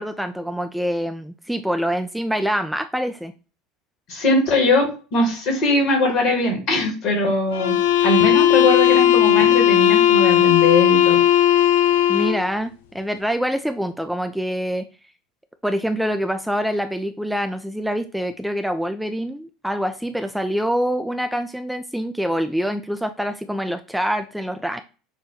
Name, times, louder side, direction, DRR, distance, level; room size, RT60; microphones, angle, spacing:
voice 1, 0.0-3.3 12.1-14.9 15.6-24.8, equal, ahead, 7 dB, 0.3 m, -25 dB
voice 2, 4.1-7.8 8.0-11.2, left 2 dB, 55° left, 2 dB, 1.5 m, -21 dB
sound 1, 7.5-12.5, left 11 dB, 70° left, 0.4 m, -16 dB
6.0 x 2.2 x 2.8 m, 0.35 s
figure-of-eight pair, 70°, 0 cm